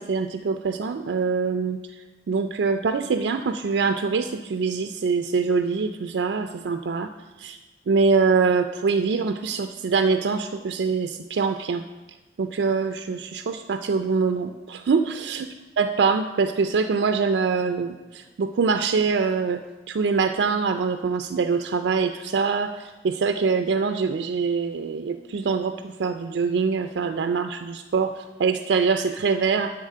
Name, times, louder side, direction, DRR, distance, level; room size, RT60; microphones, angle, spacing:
voice 1, 0.0-1.8 2.3-7.1 7.4-7.6 7.9-11.8 12.4-15.5 15.8-19.6 19.9-29.7, right 5 dB, 80° right, 7 dB, 0.4 m, -24 dB
10.5 x 4.0 x 6.5 m, 1.2 s
head